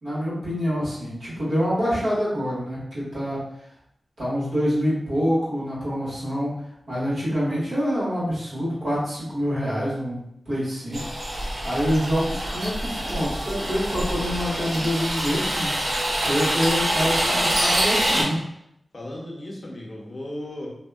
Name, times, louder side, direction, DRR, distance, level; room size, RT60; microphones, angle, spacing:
voice 1, 0.0-3.4 4.2-6.6 6.9-11.1 11.6-15.7 16.1-18.4, equal, 85° right, -9 dB, 1.4 m, -26 dB
sound 1, 10.9-18.2, right 1 dB, 55° right, 0.7 m, -25 dB
voice 2, 16.8-17.2 17.9-18.4 18.9-20.7, left 1 dB, 40° left, -3 dB, 0.7 m, -36 dB
2.7 x 2.2 x 2.3 m, 0.76 s
wide cardioid pair, 85°, 0 cm